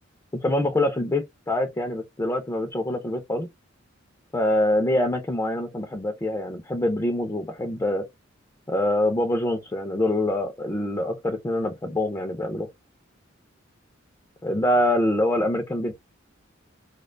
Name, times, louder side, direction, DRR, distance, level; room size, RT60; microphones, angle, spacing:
voice 1, 0.3-3.5 4.3-8.0 8.7-12.7 14.4-15.9, left 1 dB, 15° left, 0.3 m, -25 dB
2.3 x 2.2 x 2.4 m
head